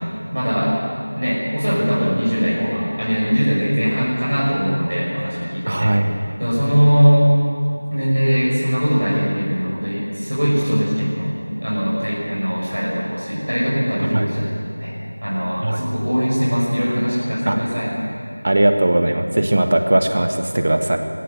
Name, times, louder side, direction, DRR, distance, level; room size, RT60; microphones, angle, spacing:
voice 1, 0.3-0.8 1.1-5.9 6.4-7.3 7.9-14.5 14.8-14.9 15.2-17.9, equal, 85° right, -6 dB, 6.4 m, -20 dB
voice 2, 5.7-6.1 14.0-14.3 15.6-15.8 17.5-17.6 18.4-21.0, right 1 dB, 30° right, 6 dB, 1.2 m, -18 dB
20.5 x 16.5 x 8.2 m, 2.5 s
figure-of-eight pair, 175°, 0 cm